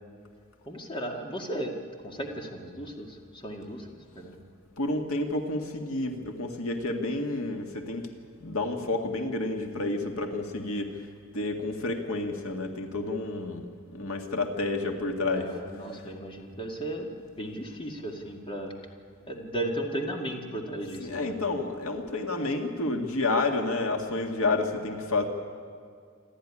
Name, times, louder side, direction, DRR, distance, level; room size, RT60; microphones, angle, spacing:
voice 1, 0.7-1.7 2.0-3.9 4.1-4.4 15.4-18.7 19.3-21.3, right 1 dB, 25° left, 1 dB, 2.1 m, -35 dB
voice 2, 4.8-8.1 8.4-11.0 11.3-15.5 15.9-16.0 21.0-25.2, left 2 dB, 85° left, 3 dB, 2.0 m, -30 dB
26.5 x 12.5 x 10.0 m, 2.1 s
head